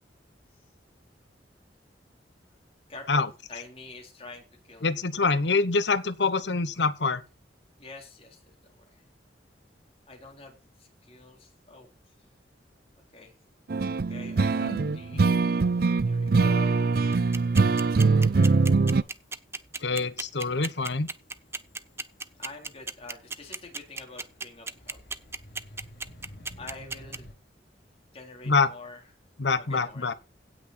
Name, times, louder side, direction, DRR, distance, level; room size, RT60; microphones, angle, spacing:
voice 1, 2.9-5.1 7.8-9.0 10.1-11.9 13.1-13.3 14.1-15.2 16.1-17.1 18.3-19.1 22.4-25.0 26.6-27.3 28.1-29.0 29.6-30.2, left 2 dB, 35° left, 3.8 m, -47 dB
voice 2, 4.8-7.2 14.6-15.2 19.8-21.1 28.5-28.7 29.4-30.1, left 4 dB, 75° left, 1.1 m, -26 dB
sound 1, 13.5-14.7 15.1-15.6 15.9-27.3, equal, 60° left, 2.7 m, -54 dB
sound 2, 13.7-19.0, right 4 dB, 55° right, 0.5 m, -22 dB
sound 3, 17.1-27.2, right 4 dB, 15° right, 0.6 m, -33 dB
16.5 x 6.2 x 4.3 m
head